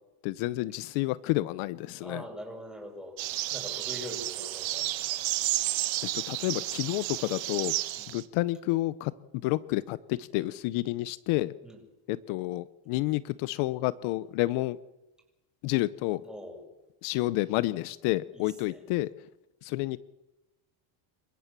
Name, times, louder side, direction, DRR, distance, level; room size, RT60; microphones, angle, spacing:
voice 1, 0.2-2.2 6.1-7.7 8.1-9.1 9.4-11.5 12.1-14.8 15.6-16.2 17.0-19.1 19.6-20.0, left 18 dB, 75° left, 18 dB, 0.9 m, -30 dB
voice 2, 2.0-3.2 3.5-5.2 8.0-8.2 11.6-11.8 16.2-16.6 18.3-18.8, equal, ahead, 1 dB, 7.9 m, -43 dB
sound 1, 3.2-8.2, right 16 dB, 65° right, 1.8 m, -32 dB
28.5 x 15.5 x 7.5 m, 1.0 s
supercardioid pair, 105°, 50 cm